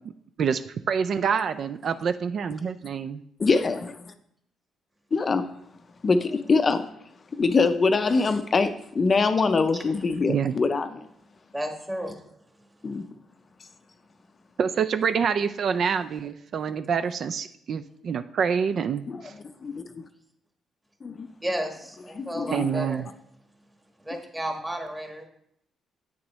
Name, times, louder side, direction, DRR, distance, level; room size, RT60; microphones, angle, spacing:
voice 1, 0.9-3.2 10.3-10.5 14.6-19.3 22.5-23.0, right 6 dB, 55° right, 0.3 m, -26 dB
voice 2, 3.4-4.0 5.1-5.5 6.0-6.9 7.4-11.0 12.8-13.0 19.1-19.2 19.6-20.0 21.0-21.3 22.1-22.7, left 4 dB, 35° left, 0.5 m, -24 dB
voice 3, 11.5-12.3 21.4-23.0 24.0-25.3, equal, 10° right, 1.3 m, -32 dB
8.4 x 6.0 x 3.1 m
cardioid pair, 90°, 0 cm